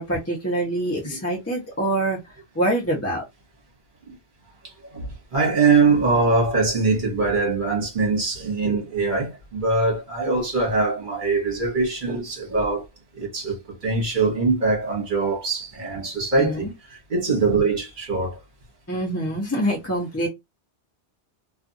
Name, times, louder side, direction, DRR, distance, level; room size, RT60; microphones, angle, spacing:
voice 1, 0.0-2.2 2.5-3.2 16.4-16.7 18.9-20.3, right 1 dB, 15° left, 0.7 m, -25 dB
voice 2, 4.8-12.8 13.1-16.7 17.1-18.4, right 3 dB, 45° right, 1.2 m, -22 dB
2.5 x 2.4 x 2.5 m
omnidirectional pair, 1.2 m